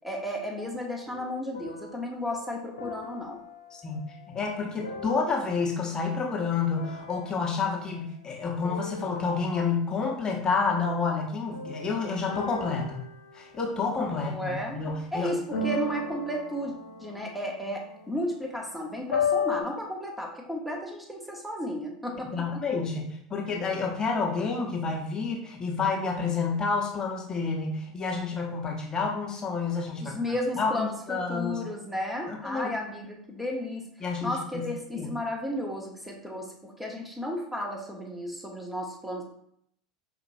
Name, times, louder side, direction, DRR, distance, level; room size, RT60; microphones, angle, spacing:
voice 1, 0.0-3.4 14.1-14.8 15.1-16.7 17.0-22.4 30.0-33.8 34.2-39.2, left 1 dB, 5° right, 0 dB, 1.1 m, -33 dB
sound 1, 0.6-6.0 6.7-8.4 8.6-9.9 11.5-14.6 15.5-19.6, left 4 dB, 80° left, 0.7 m, -37 dB
voice 2, 3.7-13.0 13.3-15.3 22.3-30.2 30.6-31.6 32.3-32.7 34.0-34.6 34.9-35.1, left 4 dB, 25° left, 0 dB, 1.1 m, -29 dB
5.2 x 2.9 x 2.6 m, 0.69 s
hypercardioid pair, 85°, 3 cm